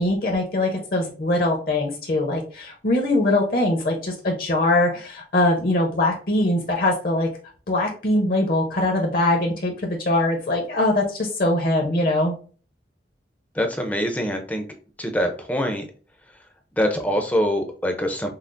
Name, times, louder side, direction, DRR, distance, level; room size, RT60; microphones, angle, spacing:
voice 1, 0.0-7.3 7.7-12.3, left 1 dB, 55° left, 2 dB, 0.7 m, -22 dB
voice 2, 13.5-14.6 15.0-15.9 16.8-18.3, equal, 10° left, 4 dB, 0.5 m, -24 dB
5.7 x 2.0 x 2.5 m, 0.39 s
head